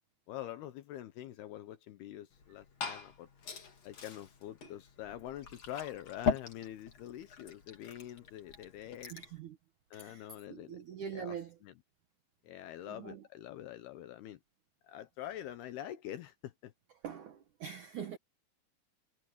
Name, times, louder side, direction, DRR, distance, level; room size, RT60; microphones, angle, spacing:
voice 1, 0.3-3.3 3.8-9.1 9.9-10.8 11.2-11.4 11.6-11.7 12.4-14.4 14.8-16.7, left 12 dB, 75° left, 2.5 m, -45 dB
Glass / Fill (with liquid), 2.3-9.4, left 6 dB, 40° left, 3.5 m, -41 dB
voice 2, 9.1-9.6 9.9-11.6 12.9-13.2 17.0-18.2, right 8 dB, 80° right, 1.7 m, -44 dB
omnidirectional pair, 5.5 m